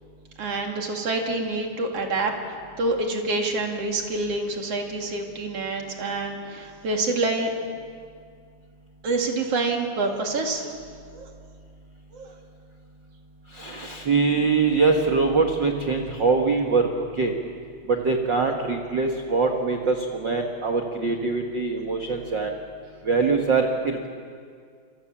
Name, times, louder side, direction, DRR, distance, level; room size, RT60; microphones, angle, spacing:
voice 1, 0.4-7.5 9.0-10.7 11.1-11.3 12.1-12.3, right 2 dB, 45° right, 2 dB, 3.0 m, -27 dB
voice 2, 13.5-16.9 17.2-17.3 17.9-22.5 23.0-24.1, right 4 dB, 70° right, 2 dB, 1.0 m, -23 dB
28.0 x 24.0 x 7.4 m, 2.2 s
omnidirectional pair, 4.6 m